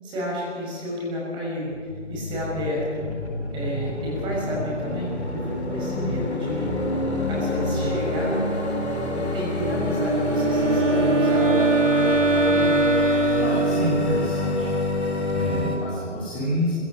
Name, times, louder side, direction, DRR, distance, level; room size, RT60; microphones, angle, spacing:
voice 1, 0.0-1.7 2.1-3.0 3.5-6.7 7.3-8.4 9.1-11.6, equal, 15° right, -4 dB, 6.2 m, -31 dB
sound 1, 1.7-15.8, left 2 dB, 65° left, 6.7 m, -27 dB
Wind instrument woodwind instrument, 9.9-14.4, right 3 dB, 85° right, 1.6 m, -22 dB
voice 2, 12.3-12.7 13.4-14.7 15.3-16.7, equal, 15° left, -8 dB, 4.0 m, -28 dB
21.5 x 16.0 x 9.1 m, 2.3 s
figure-of-eight pair, 140°, 36 cm